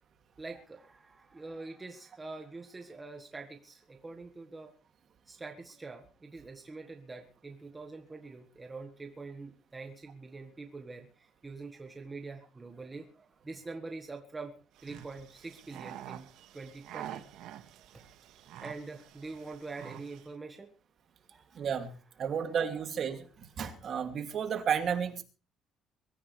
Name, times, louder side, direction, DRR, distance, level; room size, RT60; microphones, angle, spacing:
voice 1, 0.4-4.7 5.3-14.5 14.8-16.3 16.5-17.2 18.6-20.7 21.3-21.7, right 3 dB, 15° right, 3 dB, 1.5 m, -45 dB
sound 1, 14.7-20.3, right 12 dB, 80° right, 2.0 m, -47 dB
voice 2, 21.5-21.9 22.2-23.2 23.6-25.2, right 7 dB, 40° right, 6 dB, 2.6 m, -32 dB
23.5 x 15.0 x 3.4 m, 0.36 s
cardioid pair, 165°, 0 cm